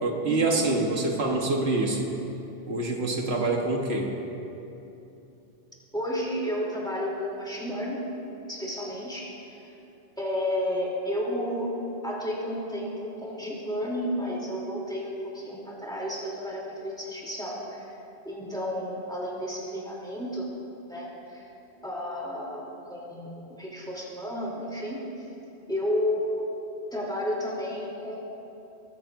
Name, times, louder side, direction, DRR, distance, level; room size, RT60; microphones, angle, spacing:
voice 1, 0.0-2.1 2.7-4.1, right 2 dB, 80° right, 0 dB, 1.5 m, -26 dB
voice 2, 5.9-8.0 8.5-9.3 10.2-11.7 12.0-17.8 18.2-20.5 20.8-21.4 21.8-25.0 25.7-26.4 26.9-28.2, equal, 5° left, -5 dB, 3.0 m, -32 dB
21.0 x 14.5 x 2.6 m, 2.9 s
omnidirectional pair, 1.1 m